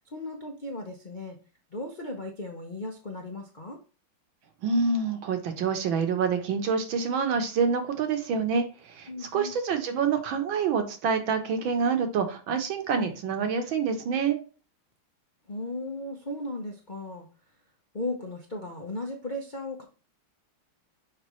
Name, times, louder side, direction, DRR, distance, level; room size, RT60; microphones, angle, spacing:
voice 1, 0.1-1.4 1.7-3.8 9.1-9.6 15.5-17.3 17.9-19.8, left 1 dB, 60° left, 1 dB, 0.4 m, -36 dB
voice 2, 4.6-14.4, right 5 dB, 70° right, 6 dB, 1.7 m, -27 dB
6.1 x 5.2 x 3.1 m, 0.36 s
omnidirectional pair, 2.4 m